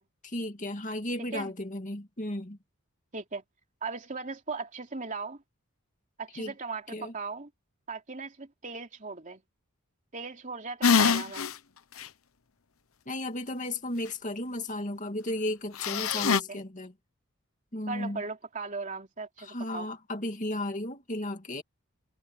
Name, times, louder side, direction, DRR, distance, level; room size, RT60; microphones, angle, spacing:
voice 1, 0.2-2.6 6.4-6.5 6.9-7.1 13.1-16.9 17.7-18.2 19.4-21.6, left 1 dB, 35° left, 2.5 m, -34 dB
voice 2, 3.1-3.4 3.8-5.4 6.2-7.5 7.9-9.4 10.1-11.5 16.0-16.6 17.9-19.9, right 4 dB, 35° right, 3.1 m, -38 dB
sound 1, 10.8-11.5 12.0-12.1 15.8-16.4, left 6 dB, 75° left, 1.0 m, -24 dB
head